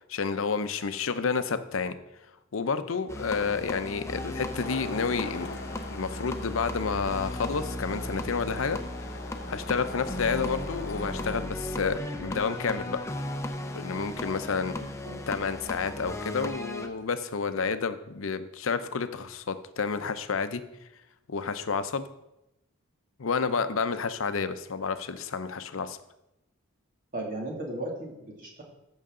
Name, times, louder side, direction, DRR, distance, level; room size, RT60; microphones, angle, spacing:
voice 1, 0.1-1.9 2.5-5.5 5.9-8.8 9.5-13.0 13.7-14.7 15.3-20.6 21.3-22.1 23.2-26.0, left 5 dB, 75° left, 10 dB, 0.7 m, -30 dB
sound 1, 3.1-16.9, left 1 dB, 15° left, 0.8 m, -36 dB
Traffic noise roadway noise, 4.6-11.4, left 3 dB, 55° left, 1.0 m, -42 dB
voice 2, 14.8-15.3 27.1-28.6, right 1 dB, 45° right, -2 dB, 2.5 m, -36 dB
14.0 x 6.4 x 3.8 m, 0.89 s
head